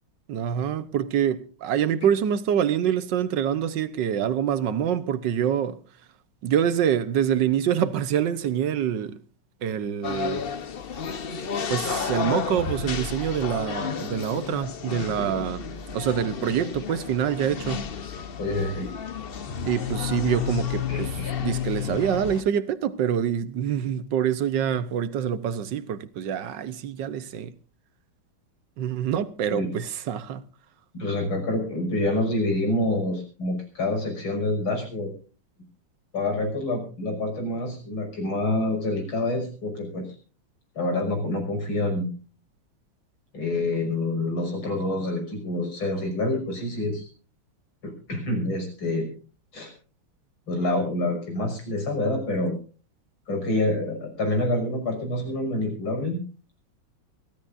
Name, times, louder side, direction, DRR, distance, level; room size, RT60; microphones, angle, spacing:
voice 1, 0.3-5.8 6.4-9.2 9.6-10.5 11.7-15.6 15.9-17.9 19.7-27.5 28.8-30.4, right 9 dB, 65° right, 1.5 m, -26 dB
sound 1, 10.0-22.4, left 7 dB, 50° left, 0.7 m, -31 dB
voice 2, 18.4-18.9 20.9-21.3 29.5-29.7 30.9-35.1 36.1-40.0 40.7-42.1 43.3-47.1 47.8-49.1 49.5-49.7 50.5-52.5 53.3-56.2, left 2 dB, 80° left, 6.8 m, -27 dB
24.0 x 15.5 x 2.6 m
omnidirectional pair, 2.2 m